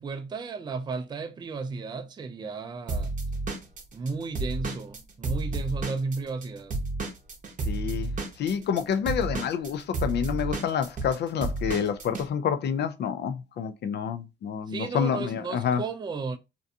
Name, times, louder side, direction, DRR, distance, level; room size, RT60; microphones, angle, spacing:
voice 1, 0.0-3.1 3.9-6.8 14.7-16.4, right 4 dB, 20° right, 0.3 m, -34 dB
Drum kit / Drum, 2.9-6.5 6.7-12.3, right 2 dB, 40° right, 0.7 m, -31 dB
voice 2, 7.7-8.1 8.4-15.8, left 7 dB, 60° left, 0.4 m, -28 dB
2.5 x 2.3 x 2.6 m
cardioid pair, 90°, 20 cm